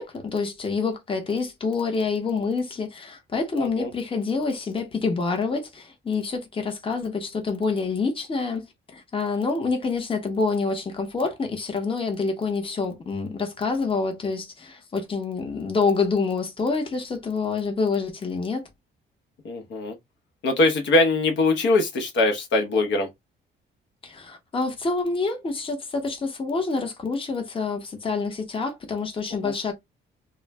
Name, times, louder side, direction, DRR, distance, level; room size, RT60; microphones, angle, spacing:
voice 1, 0.0-18.7 24.0-29.7, left 4 dB, 25° left, 0.8 m, -27 dB
voice 2, 3.5-3.9 19.4-19.9 20.4-23.1 29.4-29.5, left 2 dB, 70° left, 0.9 m, -22 dB
2.3 x 2.1 x 3.3 m
cardioid pair, 90°, 20 cm